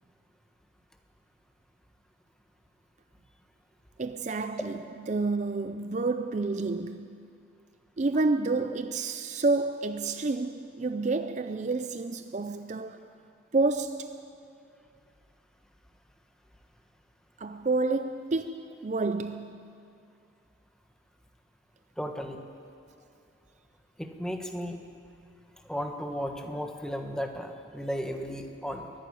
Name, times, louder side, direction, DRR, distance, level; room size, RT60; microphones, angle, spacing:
voice 1, 4.0-4.7 5.1-7.3 8.0-13.1 13.5-14.3 17.4-19.8, right 3 dB, 35° right, 0.5 m, -29 dB
voice 2, 22.0-22.4 24.0-24.8 25.6-28.9, equal, 5° left, 1.3 m, -35 dB
23.5 x 11.5 x 9.9 m
head